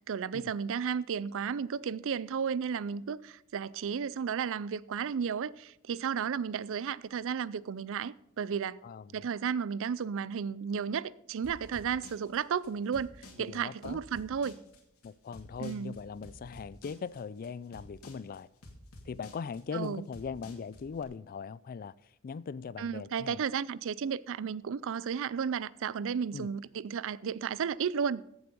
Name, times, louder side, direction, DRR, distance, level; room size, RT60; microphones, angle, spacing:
voice 1, 0.1-8.8 9.1-13.1 13.4-14.6 15.6-15.9 19.7-20.0 22.8-28.2, right 7 dB, 60° right, 0.4 m, -33 dB
voice 2, 8.8-9.2 13.4-14.0 15.0-18.5 19.1-21.9 22.2-23.4 26.3-26.5, left 5 dB, 40° left, 0.3 m, -40 dB
sound 1, 11.4-21.0, left 1 dB, 70° left, 2.5 m, -51 dB
15.0 x 7.9 x 5.3 m
head